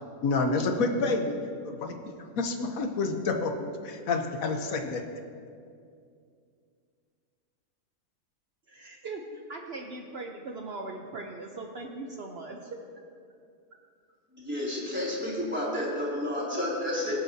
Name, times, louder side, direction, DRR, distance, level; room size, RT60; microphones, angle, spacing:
voice 1, 0.2-1.4 1.6-2.0 2.4-5.0, left 3 dB, 90° left, 5 dB, 1.3 m, -28 dB
voice 2, 8.7-12.8, right 3 dB, 55° right, 1 dB, 0.9 m, -40 dB
voice 3, 14.3-17.1, left 1 dB, 10° right, -6 dB, 3.3 m, -31 dB
23.0 x 7.9 x 2.8 m, 2.3 s
omnidirectional pair, 1.4 m